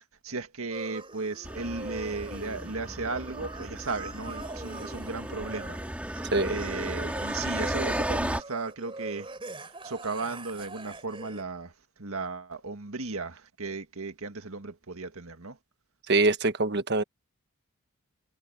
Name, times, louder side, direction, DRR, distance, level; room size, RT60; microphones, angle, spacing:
voice 1, 0.0-5.8 6.5-9.3 9.6-11.7 12.0-15.6, right 3 dB, 70° right, 1.9 m, -35 dB
sound 1, 0.7-11.4, right 2 dB, 25° right, 3.9 m, -42 dB
sound 2, 1.4-8.4, right 1 dB, 5° right, 2.8 m, -34 dB
voice 2, 16.1-17.0, right 3 dB, 50° right, 1.4 m, -24 dB
head